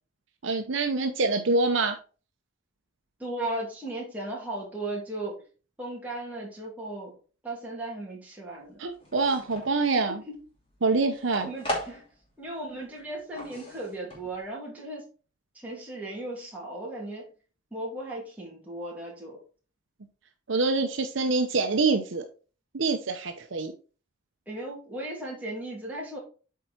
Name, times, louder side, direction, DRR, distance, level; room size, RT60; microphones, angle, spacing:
voice 1, 0.4-2.0 8.8-10.2 10.8-11.5 20.5-22.2 22.7-23.7, right 3 dB, 75° right, 6 dB, 0.8 m, -25 dB
voice 2, 3.2-5.4 5.8-7.1 7.4-8.8 10.1-10.4 11.4-12.0 12.4-15.1 15.5-17.3 17.7-19.4 24.5-26.2, right 1 dB, 10° right, -4 dB, 2.9 m, -36 dB
sound 1, 8.8-9.8 10.3-12.5 12.7-14.5, equal, 25° left, 2.6 m, -38 dB
8.3 x 4.6 x 4.4 m, 0.36 s
head